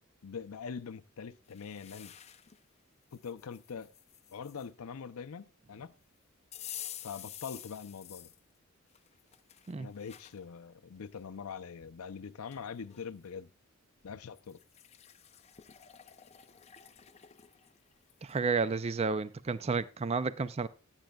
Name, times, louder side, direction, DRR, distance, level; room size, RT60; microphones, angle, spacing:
voice 1, 0.2-2.2 3.1-3.9 4.3-5.9 7.0-8.3 9.8-13.5 14.0-14.6, left 6 dB, 80° left, 0.5 m, -43 dB
sound 1, 1.5-2.6 3.1-4.7 6.5-8.4 8.9-10.4 11.0-11.1 12.1-12.2 12.5-13.1 14.4-18.4, left 10 dB, 30° left, 0.5 m, -49 dB
voice 2, 18.2-20.7, right 4 dB, 30° right, 0.4 m, -31 dB
15.5 x 9.0 x 2.3 m
head